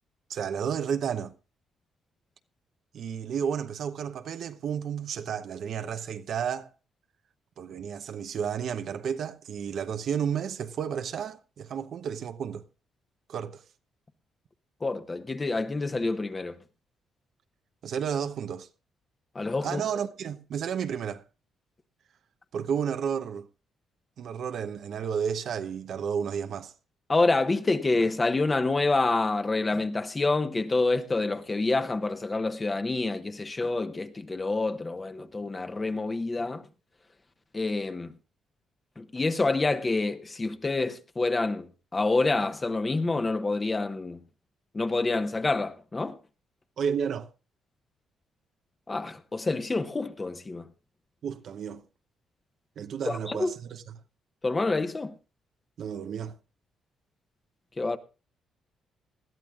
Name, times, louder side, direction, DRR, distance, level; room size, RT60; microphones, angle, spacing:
voice 1, 0.3-1.3 2.9-6.7 7.6-12.6 13.3-13.6 17.8-18.7 19.6-21.2 22.5-23.5 24.2-26.7 46.8-47.3 51.2-51.8 52.8-53.8 55.8-56.4, right 7 dB, 65° right, 0.9 m, -32 dB
voice 2, 14.8-16.6 19.3-19.8 27.1-36.7 37.5-38.1 39.0-44.2 44.7-46.2 48.9-50.7 53.1-53.5 54.4-55.1 57.8-58.0, left 3 dB, 25° left, 1.1 m, -27 dB
20.0 x 12.5 x 2.4 m
cardioid pair, 90°, 0 cm